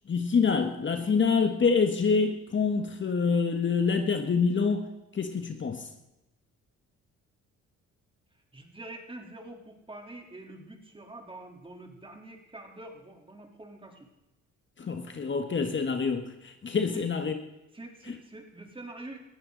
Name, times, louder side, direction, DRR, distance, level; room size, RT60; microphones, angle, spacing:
voice 1, 0.1-4.8 5.1-5.9 14.8-17.3, left 5 dB, 40° left, 6 dB, 1.6 m, -26 dB
voice 2, 8.3-14.1 16.9-17.1 17.7-19.2, right 2 dB, 15° right, 1 dB, 3.7 m, -45 dB
20.0 x 15.0 x 4.1 m, 0.96 s
cardioid pair, 90°, 30 cm